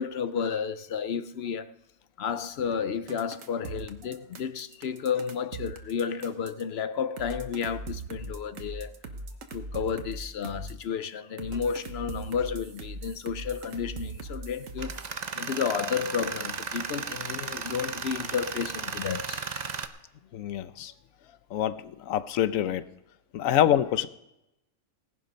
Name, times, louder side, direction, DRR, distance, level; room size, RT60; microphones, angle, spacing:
voice 1, 0.0-1.7 2.2-8.9 9.5-15.0 15.3-19.4, left 7 dB, 60° left, 0.8 m, -32 dB
sound 1, 3.1-6.6 7.2-10.8 11.4-15.1, right 3 dB, 65° right, 1.5 m, -40 dB
Tools, 14.8-19.9, right 5 dB, 40° right, 0.7 m, -35 dB
voice 2, 20.3-20.9 21.5-22.8 23.3-24.1, left 11 dB, 75° left, 1.1 m, -26 dB
17.5 x 11.0 x 5.2 m
omnidirectional pair, 1.4 m